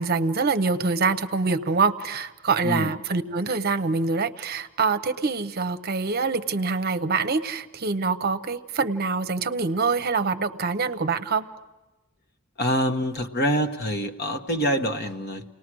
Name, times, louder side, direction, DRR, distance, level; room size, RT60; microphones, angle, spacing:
voice 1, 0.0-11.5, right 4 dB, 50° right, 11 dB, 0.7 m, -25 dB
voice 2, 12.6-15.4, equal, 50° left, 6 dB, 1.3 m, -25 dB
30.0 x 19.0 x 6.2 m, 1.0 s
head